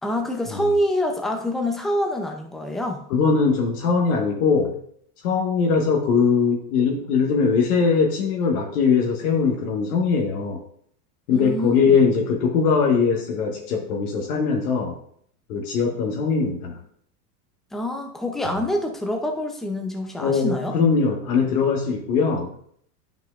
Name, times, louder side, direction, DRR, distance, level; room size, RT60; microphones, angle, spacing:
voice 1, 0.0-3.0 11.3-11.8 17.7-20.8, left 1 dB, ahead, 3 dB, 0.5 m, -26 dB
voice 2, 3.1-4.7 5.2-10.6 11.3-14.9 15.5-16.8 20.2-22.5, left 5 dB, 65° left, 1 dB, 1.4 m, -21 dB
9.6 x 5.9 x 2.4 m, 0.65 s
supercardioid pair, 120°, 47 cm